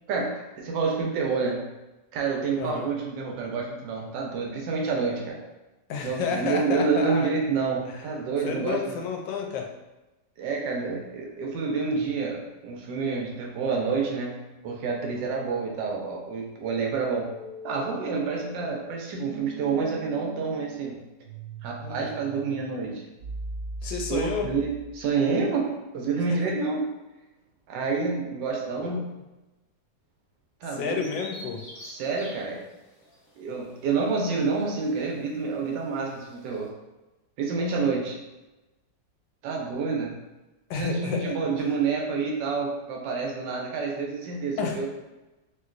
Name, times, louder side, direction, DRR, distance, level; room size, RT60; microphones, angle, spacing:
voice 1, 0.1-1.6 2.1-5.4 6.0-9.0 10.4-14.3 14.6-17.3 17.6-21.0 21.6-23.0 23.8-26.8 27.7-29.0 30.6-31.1 31.8-32.6 33.4-36.7 37.4-38.2 39.4-40.1 40.7-44.9, right 4 dB, 80° right, 0 dB, 1.2 m, -28 dB
voice 2, 2.6-2.9 5.9-7.3 7.9-8.1 8.4-9.7 21.8-22.1 23.8-24.5 26.3-26.4 28.7-29.0 30.7-31.6 40.7-41.3 44.6-44.8, left 6 dB, 90° left, 2 dB, 1.3 m, -31 dB
sound 1, 17.2-25.1, right 2 dB, 35° left, 0.9 m, -41 dB
Bird vocalization bird call bird song, 31.0-36.7, left 1 dB, 65° left, 0.5 m, -48 dB
3.0 x 2.9 x 2.4 m, 1.1 s
omnidirectional pair, 1.9 m